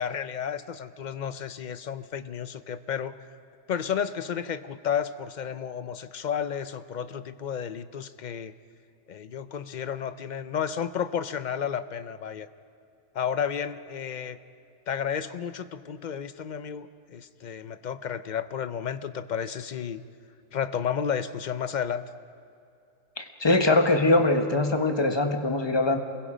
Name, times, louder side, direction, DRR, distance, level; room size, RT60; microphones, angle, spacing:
voice 1, 0.0-3.1 3.7-8.5 9.1-12.5 13.1-14.4 14.9-20.0 20.5-22.0, left 8 dB, 45° left, 12 dB, 0.7 m, -32 dB
voice 2, 23.2-26.0, left 2 dB, 20° left, 5 dB, 1.3 m, -22 dB
28.0 x 22.0 x 5.1 m, 2.5 s
omnidirectional pair, 1.2 m